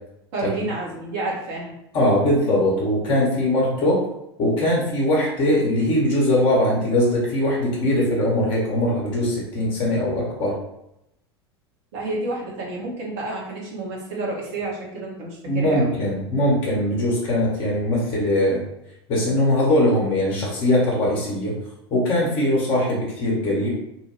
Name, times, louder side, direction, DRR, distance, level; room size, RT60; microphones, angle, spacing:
voice 1, 0.3-1.7 11.9-16.0, right 2 dB, 50° right, -4 dB, 0.9 m, -30 dB
voice 2, 1.9-4.0 4.4-10.5 15.5-18.6 19.1-21.5 21.9-23.7, left 1 dB, 40° left, -4 dB, 0.9 m, -21 dB
2.8 x 2.2 x 3.0 m, 0.84 s
figure-of-eight pair, 80°, 13 cm